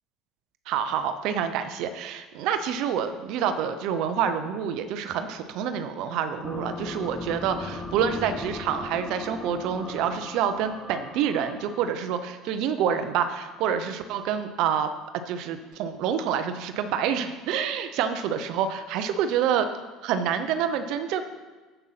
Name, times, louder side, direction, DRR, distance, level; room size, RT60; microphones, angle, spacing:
voice 1, 0.7-14.9 15.3-19.7 20.0-21.2, right 8 dB, 70° right, 9 dB, 0.7 m, -27 dB
sound 1, 6.4-12.1, left 2 dB, 10° left, 0.9 m, -38 dB
8.0 x 7.9 x 5.8 m, 1.3 s
supercardioid pair, 100°, 0 cm